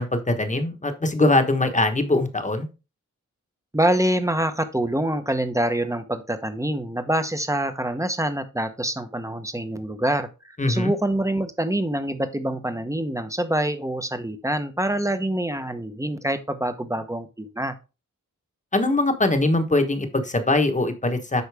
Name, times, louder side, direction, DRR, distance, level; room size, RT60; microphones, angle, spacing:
voice 1, 0.0-2.7 10.6-10.9 18.7-21.4, left 2 dB, 25° left, 6 dB, 1.2 m, -22 dB
voice 2, 3.7-17.7, right 1 dB, 10° right, 9 dB, 0.9 m, -25 dB
8.3 x 5.5 x 3.4 m, 0.30 s
wide cardioid pair, 100°, 30 cm